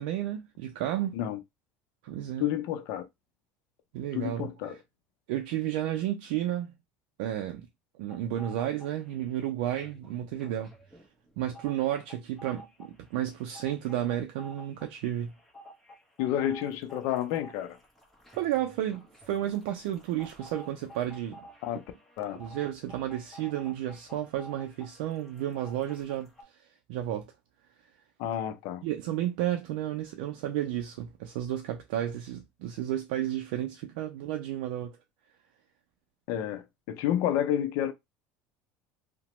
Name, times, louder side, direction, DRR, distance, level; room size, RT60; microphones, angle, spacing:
voice 1, 0.0-1.2 2.0-2.5 3.9-4.5 5.3-6.7 7.2-7.7 8.0-10.7 11.4-15.3 18.3-21.4 22.3-26.6 26.9-27.3 28.8-35.0, right 12 dB, 80° right, 0.4 m, -32 dB
voice 2, 2.4-3.0 4.1-4.8 16.2-17.8 21.6-21.8 22.2-22.4 28.2-28.8 36.3-37.9, left 11 dB, 65° left, 0.5 m, -30 dB
sound 1, 8.1-9.3 9.6-26.4, equal, 5° left, 0.8 m, -51 dB
2.9 x 2.1 x 2.9 m
cardioid pair, 135°, 5 cm